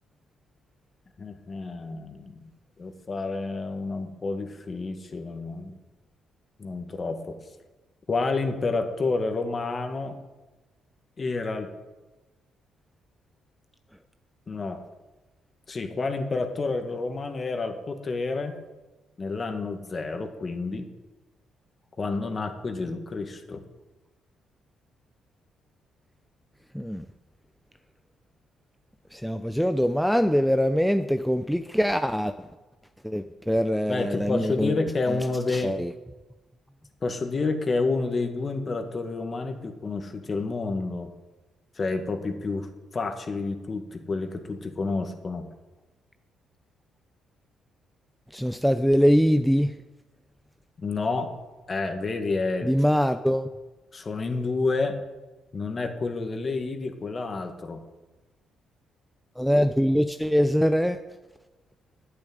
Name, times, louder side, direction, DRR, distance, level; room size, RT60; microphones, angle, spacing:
voice 1, 1.2-2.5 2.8-5.8 6.6-7.4 8.1-10.2 11.2-11.7 14.5-14.8 15.7-18.6 19.2-20.9 22.0-23.6 33.9-35.7 37.0-41.1 41.8-45.5 50.8-51.3 51.7-52.7 53.9-54.9 55.5-57.8, left 3 dB, 35° left, 6 dB, 2.0 m, -29 dB
voice 2, 26.7-27.1 29.1-32.3 33.0-34.7 35.5-35.9 48.3-49.7 52.6-53.5 59.4-61.0, equal, ahead, 8 dB, 0.6 m, -23 dB
11.0 x 9.0 x 9.2 m, 1.1 s
cardioid pair, 90°, 0 cm